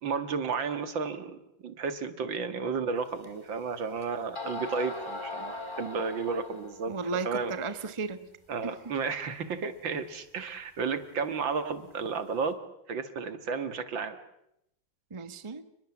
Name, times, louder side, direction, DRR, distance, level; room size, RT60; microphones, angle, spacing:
voice 1, 0.0-6.9 7.2-7.6 8.5-12.6 12.9-14.2, right 5 dB, 75° right, 10 dB, 2.5 m, -32 dB
sound 1, 3.2-3.3 4.0-4.1 4.3-6.8, left 2 dB, 15° left, 2.9 m, -39 dB
voice 2, 6.9-8.2 8.6-8.9 15.1-15.6, right 4 dB, 20° right, 11 dB, 1.0 m, -35 dB
29.5 x 21.0 x 7.2 m, 0.80 s
omnidirectional pair, 2.1 m